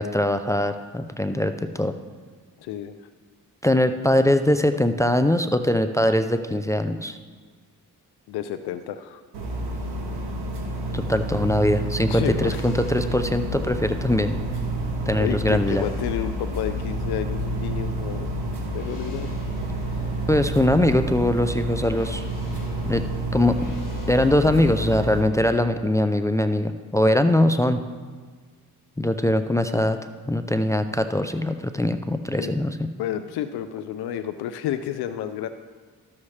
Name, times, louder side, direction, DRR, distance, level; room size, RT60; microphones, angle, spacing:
voice 1, 0.0-1.9 3.6-7.2 10.9-14.4 15.1-15.8 20.3-22.2 22.9-23.0 23.3-23.6 24.1-27.8 29.0-30.0 30.3-32.9, left 1 dB, 10° left, 9 dB, 0.4 m, -22 dB
voice 2, 2.6-3.0 8.3-9.2 12.1-12.6 15.2-18.3 18.7-19.4 19.8-20.2 32.4-32.5 33.0-35.5, left 10 dB, 90° left, 10 dB, 0.5 m, -31 dB
sound 1, 9.3-25.2, right 2 dB, 85° right, 1.8 m, -30 dB
sound 2, 12.0-24.8, left 2 dB, 55° left, 1.3 m, -37 dB
13.0 x 7.2 x 3.2 m, 1.6 s
cardioid pair, 70°, 37 cm